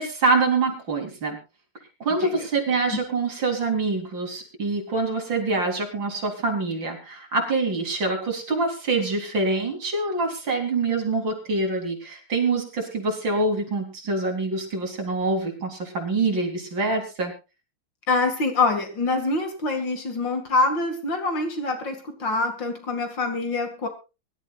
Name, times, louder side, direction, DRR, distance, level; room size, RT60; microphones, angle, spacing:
voice 1, 0.0-1.4 2.0-17.3, right 3 dB, 65° right, 1 dB, 4.4 m, -25 dB
voice 2, 18.1-23.9, left 3 dB, 60° left, 6 dB, 2.9 m, -25 dB
23.5 x 12.5 x 2.5 m, 0.30 s
omnidirectional pair, 2.3 m